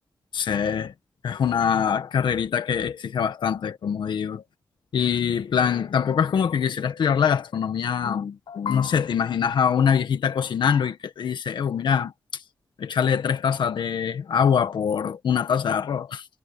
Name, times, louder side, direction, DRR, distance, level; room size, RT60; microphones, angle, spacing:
voice 1, 0.3-0.9 1.2-4.4 4.9-12.4 12.8-16.3, left 7 dB, 90° left, 1.7 m, -24 dB
cardioid pair, 65°, 8 cm